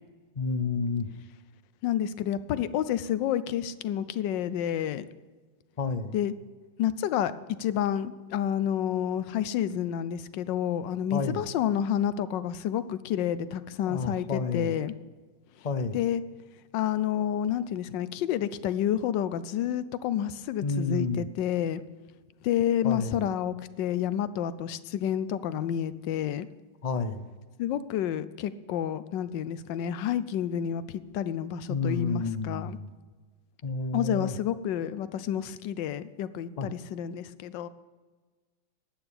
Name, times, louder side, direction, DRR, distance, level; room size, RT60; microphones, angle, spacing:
voice 1, 0.4-1.1 5.8-6.2 11.1-11.4 13.9-14.7 15.6-16.0 20.6-21.3 22.8-23.2 26.8-27.3 31.7-32.8 33.6-34.4 36.6-36.7, left 4 dB, 65° left, 10 dB, 0.4 m, -30 dB
voice 2, 1.8-5.1 6.1-6.3 6.8-7.3 7.6-14.9 15.9-16.2 16.7-21.8 22.4-26.5 27.6-32.8 33.9-37.7, left 10 dB, 90° left, 15 dB, 1.4 m, -29 dB
11.5 x 9.0 x 8.5 m, 1.4 s
omnidirectional pair, 1.9 m